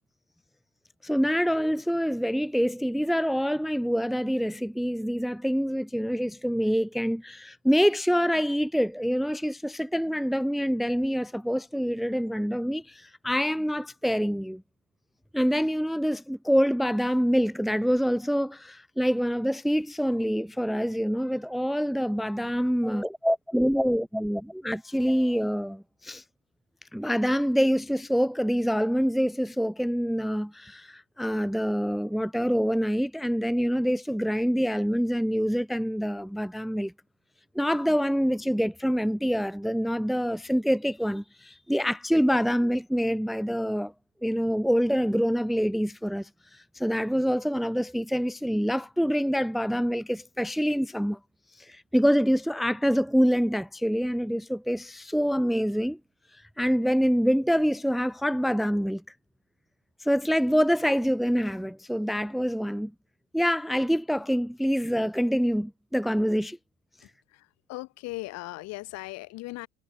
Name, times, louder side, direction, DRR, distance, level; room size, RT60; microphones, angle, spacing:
voice 1, 1.0-14.6 15.3-26.2 26.9-36.9 37.5-43.9 44.2-51.2 51.6-56.0 56.6-59.0 60.0-62.9 63.3-66.6, equal, ahead, 1.0 m, -26 dB
voice 2, 67.0-69.7, left 20 dB, 55° left, 3.8 m, -39 dB
figure-of-eight pair, 70°, 32 cm